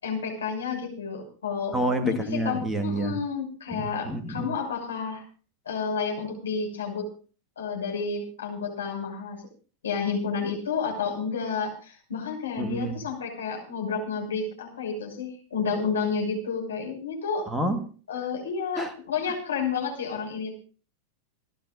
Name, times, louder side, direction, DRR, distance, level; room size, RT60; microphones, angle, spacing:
voice 1, 0.0-1.7 2.0-5.2 5.6-7.1 7.6-9.4 9.8-17.5 18.1-20.6, left 5 dB, 70° left, 6.0 m, -30 dB
voice 2, 1.7-3.2 3.7-4.5 12.6-12.9 17.5-17.8 18.8-18.9, right 1 dB, 5° right, 1.8 m, -28 dB
29.0 x 12.0 x 2.6 m
figure-of-eight pair, 90°, 0 cm